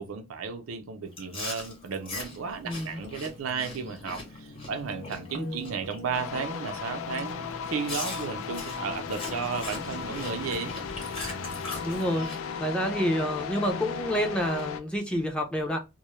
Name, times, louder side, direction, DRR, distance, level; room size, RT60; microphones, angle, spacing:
voice 1, 0.0-10.7, right 5 dB, 85° right, 0.5 m, -34 dB
Chewing mastication, 1.1-6.0 6.3-6.7 7.1-7.3 7.9-12.4, left 3 dB, 30° left, 0.8 m, -40 dB
sound 1, 2.3-12.3, left 1 dB, 70° left, 0.8 m, -46 dB
voice 2, 2.7-3.0 5.3-5.6 11.8-12.3 12.6-15.8, equal, 5° left, 0.4 m, -28 dB
sound 2, 6.1-14.8, left 7 dB, 85° left, 0.3 m, -36 dB
2.2 x 2.0 x 2.9 m
head